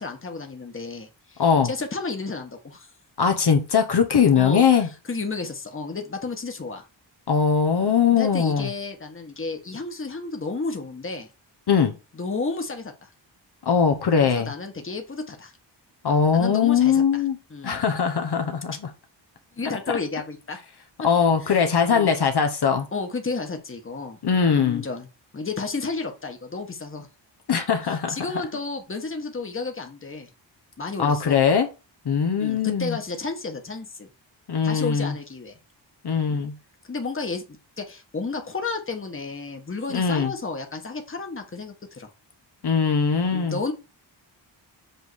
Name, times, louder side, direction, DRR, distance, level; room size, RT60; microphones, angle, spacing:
voice 1, 0.0-2.9 4.3-4.6 5.1-6.8 8.1-11.3 12.1-13.1 14.2-15.5 16.3-17.2 17.5-17.8 19.6-20.6 21.4-21.6 21.9-22.1 22.9-24.2 24.5-25.1 25.3-27.1 27.9-30.3 30.8-31.4 32.4-34.1 34.6-35.6 36.3-36.4 36.9-42.1 43.3-43.7, left 3 dB, 25° left, 1.4 m, -32 dB
voice 2, 1.4-1.7 3.2-4.9 7.3-8.7 11.7-11.9 13.6-14.5 16.0-17.4 17.6-18.7 21.0-22.9 24.2-24.8 27.5-28.2 31.0-31.7 32.0-33.0 34.5-35.1 36.0-36.5 39.9-40.3 42.6-43.6, left 6 dB, 60° left, 1.1 m, -21 dB
8.0 x 3.7 x 6.3 m
wide cardioid pair, 180°, 45 cm